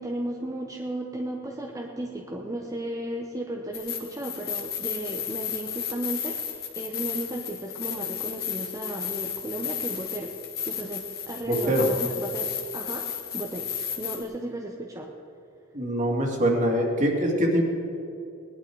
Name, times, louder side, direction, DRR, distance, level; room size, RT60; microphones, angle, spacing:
voice 1, 0.0-13.1 13.3-13.7 14.0-15.1, right 1 dB, 15° right, 0 dB, 0.9 m, -34 dB
sound 1, 3.7-14.2, left 8 dB, 50° left, 1.9 m, -33 dB
voice 2, 11.5-11.9 15.7-17.6, equal, 35° right, 0 dB, 2.6 m, -23 dB
19.5 x 11.5 x 4.7 m, 2.7 s
head